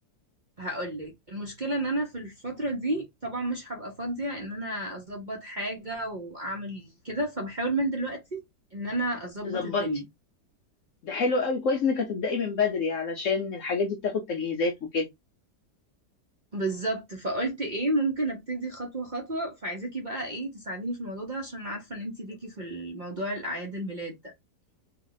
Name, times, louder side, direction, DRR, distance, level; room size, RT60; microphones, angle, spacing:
voice 1, 0.6-8.4 8.7-10.0 16.5-24.3, right 1 dB, 40° right, 0.7 m, -32 dB
voice 2, 9.4-9.9 11.0-15.1, left 4 dB, 65° left, 0.8 m, -27 dB
3.3 x 2.3 x 3.9 m
omnidirectional pair, 1.8 m